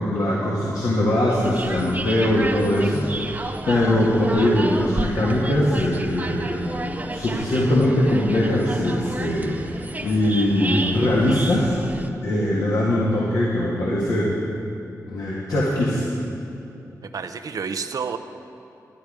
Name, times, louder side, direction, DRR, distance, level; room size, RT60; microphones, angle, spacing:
voice 1, 0.0-9.5 10.0-11.7 12.2-14.3 15.1-16.1, left 1 dB, 75° left, -6 dB, 1.6 m, -21 dB
sound 1, 1.3-12.1, right 2 dB, 25° right, 0.7 m, -31 dB
voice 2, 17.0-18.2, right 6 dB, 70° right, 9 dB, 0.5 m, -29 dB
11.5 x 10.0 x 4.9 m, 2.8 s
cardioid pair, 70°, 6 cm